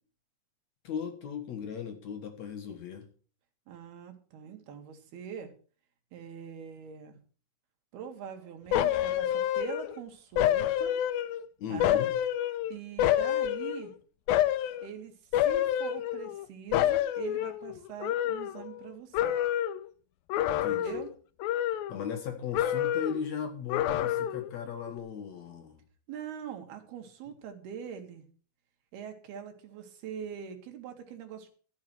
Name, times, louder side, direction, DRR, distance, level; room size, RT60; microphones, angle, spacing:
voice 1, 0.8-3.1 11.6-12.1 20.6-21.0 21.9-25.8, left 7 dB, 60° left, 6 dB, 2.3 m, -37 dB
voice 2, 3.7-5.5 6.1-7.2 7.9-11.0 11.7-12.0 12.7-13.9 14.8-15.2 15.4-19.4 20.6-21.1 26.1-28.2 28.9-31.5, right 8 dB, 90° right, 5 dB, 3.9 m, -43 dB
sound 1, 8.7-10.0 10.4-11.4 11.8-13.9 14.3-14.9 15.3-16.5 16.7-18.9 19.1-19.8 20.3-21.1 21.4-22.3 22.5-23.3 23.7-24.5 24.9-25.0, left 11 dB, 80° left, 2.4 m, -28 dB
13.5 x 7.4 x 6.2 m, 0.41 s
omnidirectional pair, 4.4 m